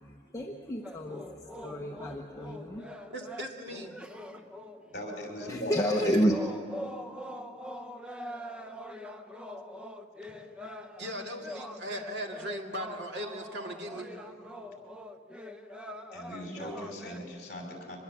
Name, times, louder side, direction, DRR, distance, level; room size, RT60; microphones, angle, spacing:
voice 1, 0.0-1.3 1.6-2.9 5.5-6.4, equal, 15° left, 0 dB, 1.0 m, -30 dB
sound 1, 0.8-17.2, equal, 5° right, 0.8 m, -43 dB
voice 2, 3.1-3.9 6.0-6.2 11.0-14.1, equal, 65° right, 2 dB, 2.3 m, -38 dB
voice 3, 4.9-5.9 6.2-6.3 16.1-18.0, left 1 dB, 40° left, 1 dB, 5.5 m, -39 dB
24.5 x 21.0 x 7.4 m, 2.2 s
head